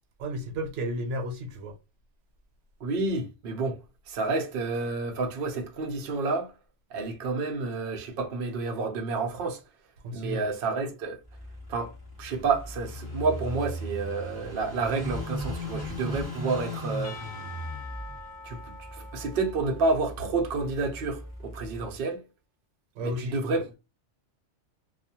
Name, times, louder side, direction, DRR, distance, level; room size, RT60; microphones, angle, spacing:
voice 1, 0.2-1.8 10.0-10.5 23.0-23.6, equal, 90° right, 0.9 m, -33 dB
voice 2, 2.8-3.8 4.1-6.5 6.9-9.6 10.1-11.2 11.7-11.9 12.2-17.2 18.4-22.2 23.0-23.8, right 3 dB, 60° right, 0.7 m, -29 dB
Car passing by / Idling, 11.3-21.9, equal, 20° left, 0.8 m, -38 dB
Percussion / Church bell, 17.0-21.0, left 4 dB, 55° left, 0.6 m, -46 dB
2.3 x 2.2 x 2.7 m
omnidirectional pair, 1.2 m